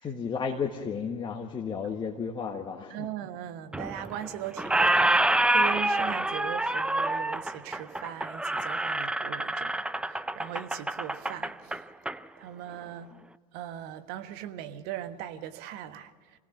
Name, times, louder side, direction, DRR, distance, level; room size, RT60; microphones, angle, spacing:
voice 1, 0.0-3.1, left 6 dB, 25° left, 1 dB, 1.6 m, -33 dB
voice 2, 2.9-11.8 12.4-13.1 13.5-16.1, right 11 dB, 55° right, 10 dB, 1.3 m, -39 dB
Squeak, 3.7-4.3 4.6-12.2, right 1 dB, 5° right, 0.6 m, -27 dB
25.5 x 18.0 x 6.0 m, 1.5 s
hypercardioid pair, 80°, 20 cm